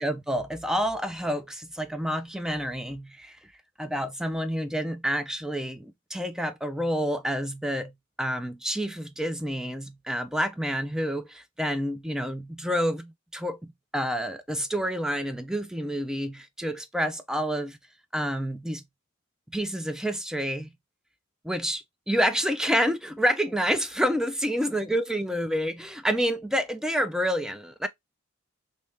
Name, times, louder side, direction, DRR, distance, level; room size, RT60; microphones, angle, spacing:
voice 1, 0.0-3.5 3.8-17.8 18.1-18.8 19.5-20.7 21.4-27.9, equal, 5° right, 0.4 m, -28 dB
3.3 x 2.7 x 3.1 m
head